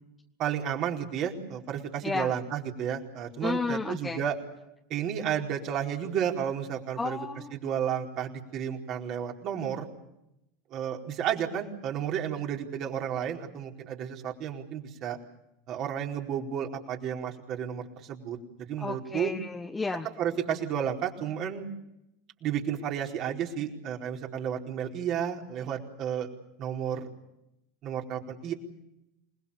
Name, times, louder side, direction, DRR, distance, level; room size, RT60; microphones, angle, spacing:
voice 1, 0.4-4.4 4.9-7.2 7.5-9.9 10.7-15.2 15.7-19.3 20.2-21.7 22.4-26.3 26.6-27.1 27.8-28.5, right 9 dB, 45° right, 1 dB, 4.5 m, -32 dB
voice 2, 3.4-4.2 7.0-7.5 18.8-20.1, left 3 dB, 15° left, 4 dB, 1.6 m, -32 dB
28.0 x 21.5 x 7.1 m, 0.85 s
figure-of-eight pair, 80°, 0 cm